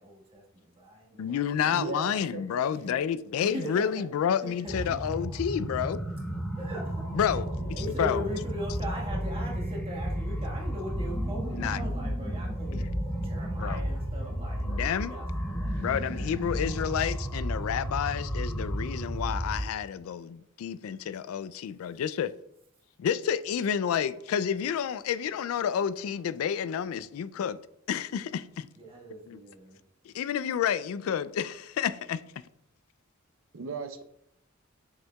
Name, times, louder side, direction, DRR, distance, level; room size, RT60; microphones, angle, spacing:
voice 1, 0.0-1.7 2.7-3.0 3.4-4.1 4.4-5.0 6.6-7.1 7.7-12.9 13.2-15.8 28.8-29.8, equal, 25° right, 1.4 m, -40 dB
voice 2, 1.2-6.0 7.1-8.2 11.5-11.9 12.7-12.9 13.6-13.8 14.6-15.1 15.8-22.3 23.0-27.6 27.9-28.7 29.3-29.4 30.0-32.2, left 8 dB, 80° left, 0.3 m, -30 dB
voice 3, 1.7-2.8 33.5-34.0, right 5 dB, 70° right, 0.5 m, -37 dB
sound 1, 4.6-19.6, equal, 10° left, 1.0 m, -33 dB
7.2 x 6.3 x 2.3 m
head